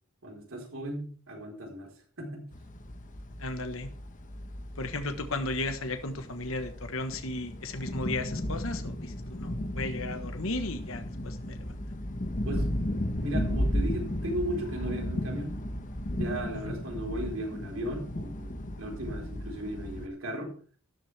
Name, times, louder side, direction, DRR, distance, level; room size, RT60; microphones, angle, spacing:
voice 1, 0.2-2.5 12.4-15.6 16.2-20.5, right 1 dB, 70° right, 1 dB, 4.4 m, -36 dB
sound 1, 2.5-20.1, left 1 dB, 40° left, 1.2 m, -35 dB
voice 2, 3.4-3.9 4.8-11.6 16.6-16.8, left 2 dB, 70° left, 7 dB, 1.4 m, -35 dB
13.5 x 11.0 x 3.5 m, 0.42 s
head